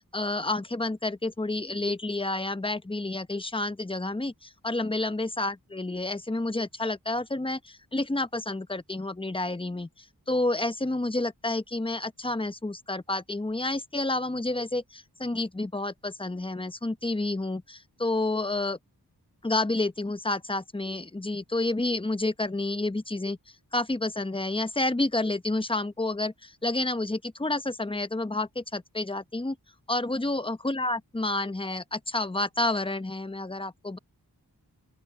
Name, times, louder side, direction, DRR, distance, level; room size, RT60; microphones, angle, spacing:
voice 1, 0.1-18.8 19.4-23.4 23.7-29.6 29.9-34.0, left 2 dB, 15° left, 0.9 m, -29 dB
open air
wide cardioid pair, 55°, 38 cm